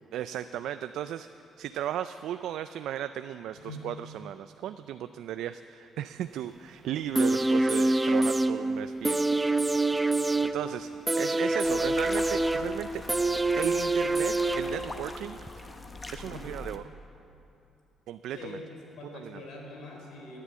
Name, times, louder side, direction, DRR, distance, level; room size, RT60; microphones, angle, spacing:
voice 1, 0.1-1.3 1.6-9.3 10.5-10.9 11.2-13.0 13.6-15.4 16.1-16.8 18.1-18.6 19.1-19.4, right 11 dB, 85° right, 11 dB, 0.3 m, -35 dB
voice 2, 3.6-3.9 10.2-10.4 11.4-12.0 16.2-16.5 18.3-18.7 19.0-20.4, left 2 dB, 80° left, 0 dB, 3.7 m, -44 dB
sound 1, 7.1-15.1 15.5-15.6, right 2 dB, 15° right, 0.6 m, -26 dB
sound 2, 11.6-16.8, left 2 dB, 20° left, 1.2 m, -43 dB
15.0 x 9.9 x 8.2 m, 2.8 s
cardioid pair, 90°, 0 cm